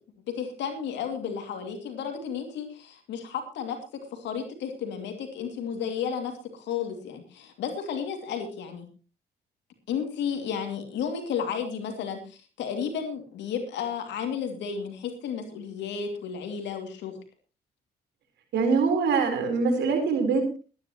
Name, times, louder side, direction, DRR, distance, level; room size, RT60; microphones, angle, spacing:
voice 1, 0.3-3.8 4.1-8.9 9.9-17.1, left 7 dB, 80° left, 5 dB, 2.6 m, -33 dB
voice 2, 18.5-20.6, right 4 dB, 75° right, 5 dB, 4.1 m, -24 dB
22.0 x 10.5 x 3.0 m, 0.34 s
supercardioid pair, 55°, 18 cm